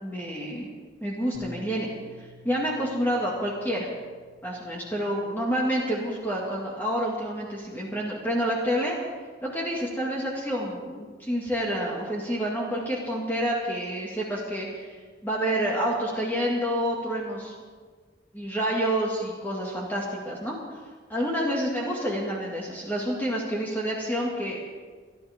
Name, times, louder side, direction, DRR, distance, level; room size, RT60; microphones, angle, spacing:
voice 1, 0.0-0.7 1.0-1.9 2.2-3.9 4.4-9.0 9.4-17.5 18.3-20.6 21.1-24.6, equal, 10° left, -4 dB, 2.0 m, -28 dB
Bass guitar, 1.3-5.9 6.6-7.6, equal, 30° right, 3.1 m, -51 dB
27.0 x 11.0 x 3.6 m, 1.5 s
head